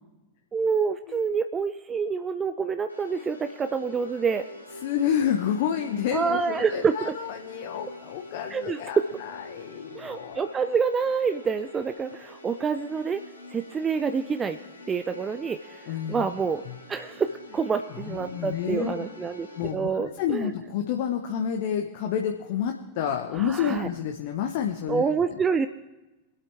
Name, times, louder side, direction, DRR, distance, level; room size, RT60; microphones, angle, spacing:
voice 1, 0.5-4.5 6.1-7.2 8.5-8.8 9.9-13.2 13.5-14.6 14.9-16.6 16.9-20.5 23.4-23.9 24.9-25.7, right 5 dB, 20° right, 10 dB, 0.5 m, -27 dB
sound 1, 2.9-19.7, left 2 dB, 85° left, 2.0 m, -46 dB
voice 2, 4.8-10.5 15.9-16.3 16.7-16.8 18.0-19.1 19.6-25.0 25.3-25.4, left 8 dB, 50° left, 4 dB, 0.9 m, -29 dB
24.0 x 8.5 x 3.4 m, 1.1 s
figure-of-eight pair, 90°, 0 cm